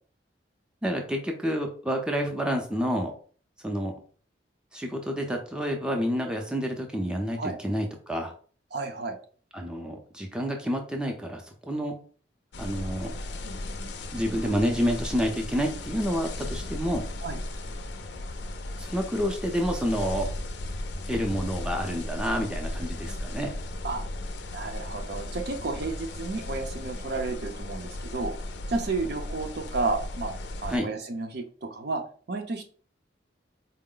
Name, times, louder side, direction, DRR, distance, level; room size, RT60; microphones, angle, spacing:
voice 1, 0.8-3.1 3.6-3.9 4.7-8.3 9.5-12.0 12.6-13.1 14.1-17.0 18.8-20.3 21.1-23.5 30.7-30.9, equal, 5° right, 2 dB, 0.6 m, -29 dB
voice 2, 8.7-9.2 17.2-17.4 23.8-24.0 24.5-28.4 28.7-30.3 30.6-32.0 32.3-32.6, right 3 dB, 65° right, 4 dB, 0.7 m, -32 dB
sound 1, 12.5-30.8, left 1 dB, 70° left, 0.5 m, -36 dB
4.4 x 2.1 x 3.8 m, 0.43 s
head